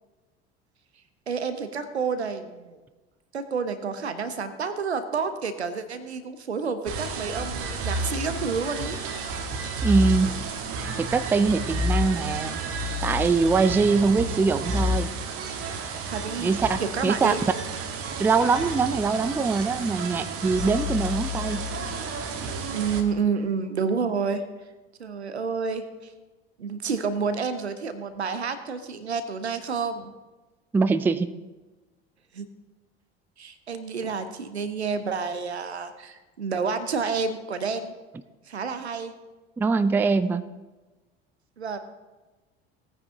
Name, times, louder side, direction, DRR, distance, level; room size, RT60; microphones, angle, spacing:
voice 1, 1.3-2.8 3.3-9.0 16.1-16.5 16.8-17.4 22.7-24.4 25.0-26.1 26.6-30.1 32.3-32.5 33.4-37.9 38.5-39.1 41.6-41.8, right 5 dB, 85° right, 10 dB, 0.8 m, -29 dB
sound 1, 6.9-23.0, right 1 dB, 45° right, 1.4 m, -30 dB
voice 2, 9.8-10.3 11.0-12.6 13.0-15.1 16.4-17.3 18.2-21.7 30.7-31.3 39.6-40.4, right 4 dB, 5° right, 13 dB, 0.3 m, -23 dB
17.0 x 9.4 x 2.8 m, 1.2 s
figure-of-eight pair, 65°, 32 cm